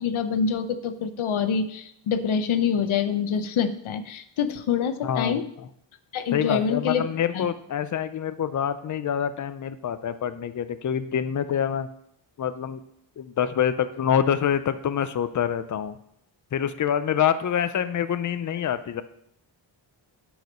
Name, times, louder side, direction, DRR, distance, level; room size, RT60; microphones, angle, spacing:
voice 1, 0.0-5.4 6.1-7.0 7.3-7.5, left 6 dB, 85° left, 10 dB, 0.8 m, -26 dB
voice 2, 5.0-5.4 6.3-11.9 12.4-12.8 13.2-16.0 16.5-19.0, left 8 dB, 40° left, 12 dB, 0.5 m, -26 dB
9.2 x 4.9 x 5.2 m, 0.72 s
wide cardioid pair, 135°, 47 cm